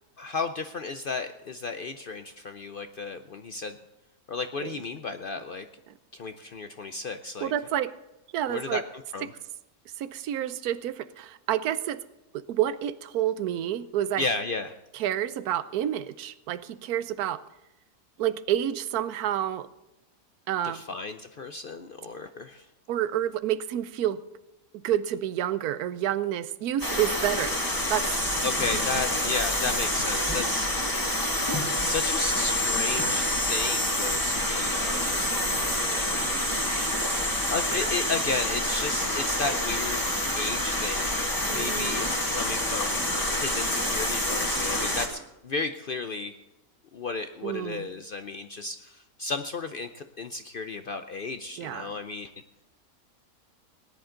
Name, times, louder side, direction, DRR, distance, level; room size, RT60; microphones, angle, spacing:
voice 1, 0.2-3.8 4.3-5.7 6.1-7.5 8.5-8.8 9.1-9.3 14.2-14.8 20.6-22.7 28.4-30.8 31.8-36.5 37.5-40.1 40.4-43.0 43.4-46.3 46.9-52.3, left 3 dB, 60° left, 8 dB, 0.5 m, -34 dB
voice 2, 7.4-7.9 8.3-8.8 10.0-12.0 12.3-14.2 14.9-17.4 18.2-19.7 20.5-20.8 22.9-24.2 24.7-27.6 27.9-28.1 30.6-30.9 34.8-35.2 36.7-37.3 41.5-42.0 47.4-47.9 51.6-51.9, right 11 dB, 90° right, 14 dB, 1.2 m, -29 dB
sound 1, 26.8-45.1, left 1 dB, 15° left, 1.8 m, -27 dB
18.5 x 10.5 x 3.8 m, 0.95 s
omnidirectional pair, 1.5 m